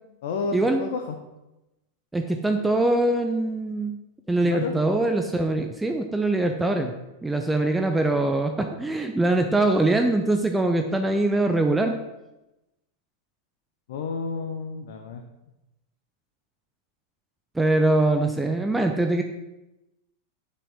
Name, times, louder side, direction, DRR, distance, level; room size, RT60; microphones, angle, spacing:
voice 1, 0.2-1.0 4.4-4.7 13.9-15.2, left 4 dB, 55° left, 4 dB, 0.9 m, -30 dB
voice 2, 2.1-4.0 4.3-6.9 7.2-11.9 17.5-19.2, right 2 dB, 5° right, 5 dB, 0.7 m, -23 dB
7.7 x 6.2 x 6.1 m, 0.97 s
figure-of-eight pair, 90°, 0 cm